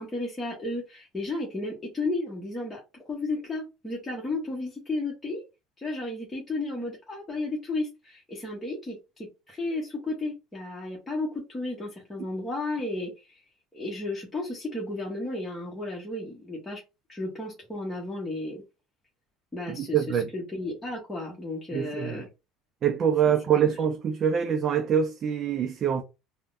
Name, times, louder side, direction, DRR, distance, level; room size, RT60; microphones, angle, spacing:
voice 1, 0.0-2.8 3.1-5.4 5.8-13.4 13.7-16.8 17.1-18.6 19.5-22.3 23.3-23.7, left 2 dB, 15° left, 1.0 m, -33 dB
voice 2, 19.7-20.3 21.7-22.2 22.8-26.0, right 8 dB, 40° right, 0.4 m, -25 dB
3.4 x 2.1 x 2.5 m
supercardioid pair, 100°, 0 cm